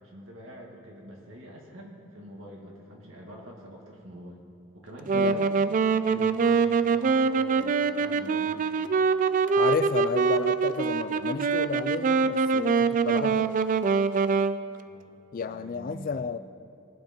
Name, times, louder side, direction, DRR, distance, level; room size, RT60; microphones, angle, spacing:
voice 1, 0.0-4.4 4.7-5.5 6.0-8.6 14.8-15.2 15.5-16.4, equal, 75° right, 2.3 m, -46 dB
voice 2, 5.1-5.6 6.1-6.4 9.6-13.6 15.3-16.4, left 5 dB, 45° left, 0.4 m, -32 dB
Wind instrument woodwind instrument, 5.1-14.6, right 5 dB, 40° right, 0.3 m, -24 dB
20.0 x 7.6 x 4.5 m
head